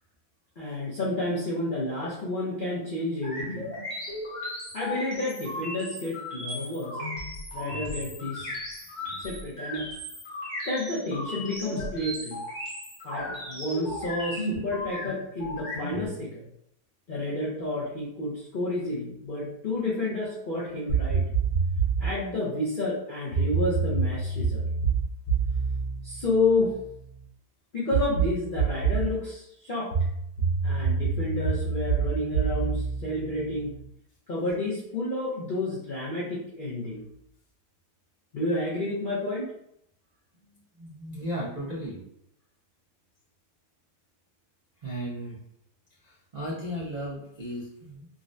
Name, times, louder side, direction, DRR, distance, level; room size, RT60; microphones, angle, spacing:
voice 1, 0.6-3.7 4.7-7.0 7.5-8.5 9.1-9.9 10.7-12.4 13.0-16.4 17.1-21.2 22.0-24.7 26.0-26.8 27.7-29.9 30.6-33.7 34.3-37.0 38.3-39.5, left 2 dB, 70° left, -7 dB, 0.4 m, -30 dB
sound 1, 3.2-16.1, left 1 dB, 35° left, 0.9 m, -36 dB
sound 2, 20.9-22.2 23.3-27.0 27.9-29.2 29.9-33.8, right 5 dB, 90° left, 1.4 m, -27 dB
voice 2, 40.8-42.0 44.8-45.4 46.0-48.1, equal, 90° right, -7 dB, 0.3 m, -35 dB
3.7 x 2.1 x 2.5 m, 0.74 s
omnidirectional pair, 1.8 m